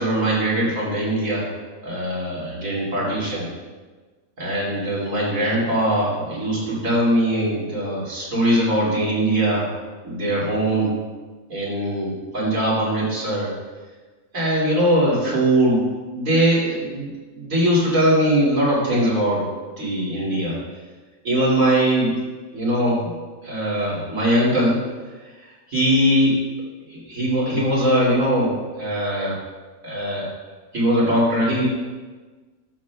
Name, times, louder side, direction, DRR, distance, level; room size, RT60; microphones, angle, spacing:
voice 1, 0.0-1.4 1.8-3.5 4.4-9.7 10.0-11.0 11.5-13.5 14.3-19.4 19.8-20.6 21.2-22.1 22.5-23.1 23.4-24.8 25.7-26.4 26.9-29.3 29.8-30.3 30.7-31.7, right 1 dB, 75° right, -7 dB, 3.0 m, -21 dB
13.5 x 6.3 x 2.3 m, 1.3 s
omnidirectional pair, 1.4 m